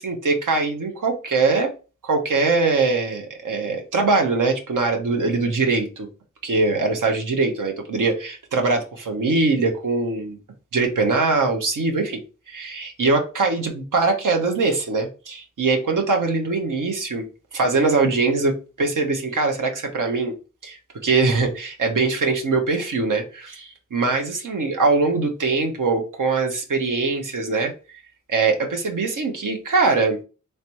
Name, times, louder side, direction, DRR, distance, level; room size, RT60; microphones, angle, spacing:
voice 1, 0.0-1.7 2.0-6.1 6.4-10.4 10.7-12.2 12.5-17.3 17.5-20.3 20.6-27.7 28.3-30.2, right 3 dB, 75° right, 3 dB, 0.8 m, -22 dB
3.3 x 3.1 x 2.9 m, 0.33 s
cardioid pair, 60°, 31 cm